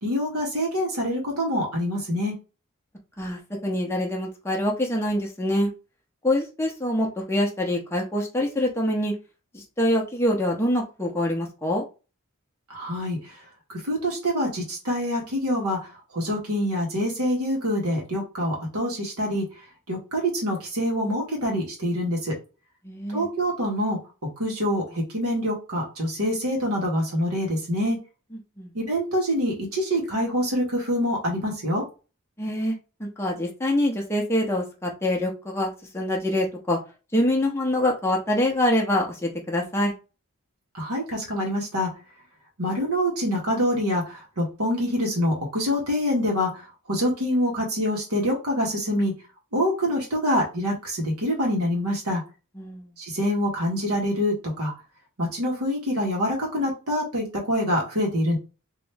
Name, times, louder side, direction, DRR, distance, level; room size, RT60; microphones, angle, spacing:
voice 1, 0.0-2.3 12.7-13.2 13.8-15.8 16.1-19.4 19.9-22.3 23.1-24.0 24.4-28.0 28.8-31.8 40.8-41.9 42.6-46.5 46.9-49.1 49.5-52.2 53.0-54.7 55.2-58.4, equal, 90° right, -1 dB, 1.7 m, -25 dB
voice 2, 3.2-5.7 6.2-9.1 9.5-11.8 22.8-23.3 28.6-28.7 32.4-32.7 33.0-36.8 37.1-39.9 52.6-52.9, left 1 dB, 10° left, 0 dB, 0.7 m, -25 dB
3.0 x 3.0 x 3.4 m, 0.32 s
head